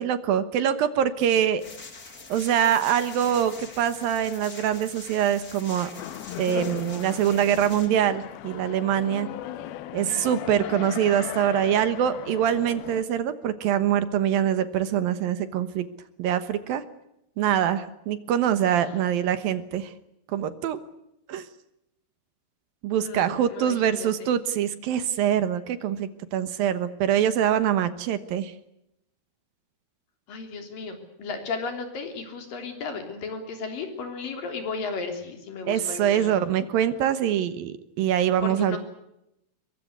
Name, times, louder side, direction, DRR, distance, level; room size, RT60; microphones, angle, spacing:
voice 1, 0.0-1.6 2.3-5.9 6.4-9.3 9.9-15.9 16.2-16.8 17.4-19.9 20.3-20.8 21.3-21.5 22.8-28.5 35.7-38.8, right 10 dB, 70° right, 12 dB, 2.8 m, -24 dB
sound 1, 1.6-7.9, left 3 dB, 25° left, 2.6 m, -44 dB
sound 2, 6.0-13.0, left 12 dB, 80° left, 3.0 m, -37 dB
voice 2, 22.9-24.1 30.3-36.4 38.4-38.8, left 4 dB, 60° left, 5 dB, 4.9 m, -34 dB
23.0 x 22.5 x 8.2 m, 0.82 s
omnidirectional pair, 4.5 m